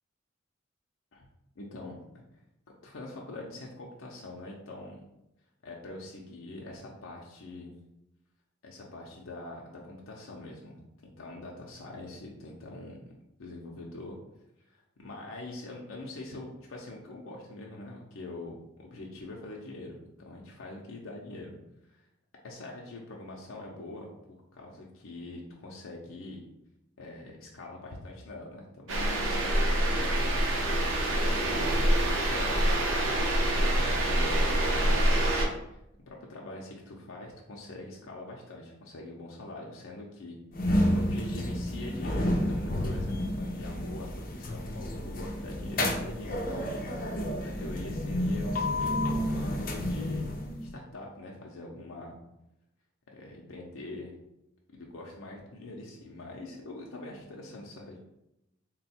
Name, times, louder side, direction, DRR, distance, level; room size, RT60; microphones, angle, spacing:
voice 1, 1.6-2.0 2.8-5.0 5.6-7.7 8.6-10.8 11.2-13.0 13.4-14.2 14.7-21.6 21.9-22.0 22.4-24.1 24.5-26.4 27.0-30.2 30.8-32.8 33.3-35.0 36.1-46.7 47.4-50.2 50.6-52.1 53.1-54.1 54.7-58.0, left 2 dB, 90° left, -2 dB, 0.6 m, -44 dB
sound 1, 28.9-35.5, right 1 dB, 85° right, 0.8 m, -26 dB
sound 2, 40.5-50.7, left 1 dB, 45° left, 0.5 m, -30 dB
3.7 x 2.2 x 4.2 m, 0.86 s
head